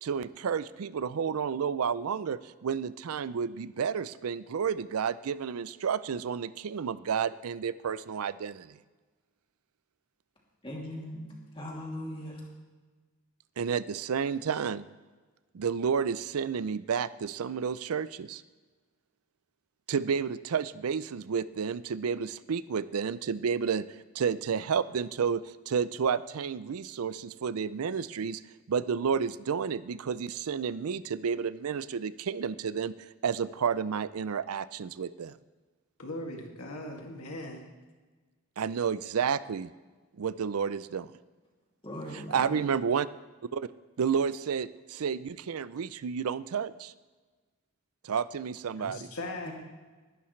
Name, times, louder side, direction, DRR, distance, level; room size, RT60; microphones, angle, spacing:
voice 1, 0.0-8.8 13.6-14.8 15.5-18.4 19.9-23.8 24.1-28.4 28.7-32.9 33.2-35.4 38.6-39.7 40.2-41.1 42.1-43.1 43.5-43.7 44.0-46.9 48.0-49.1, right 6 dB, 85° right, 16 dB, 0.4 m, -31 dB
voice 2, 10.6-12.5 41.8-42.7 49.4-49.5, equal, 25° left, -3 dB, 2.6 m, -39 dB
voice 3, 36.0-37.7 48.8-49.5, left 1 dB, 85° left, 1 dB, 2.2 m, -39 dB
19.5 x 11.5 x 3.2 m, 1.3 s
head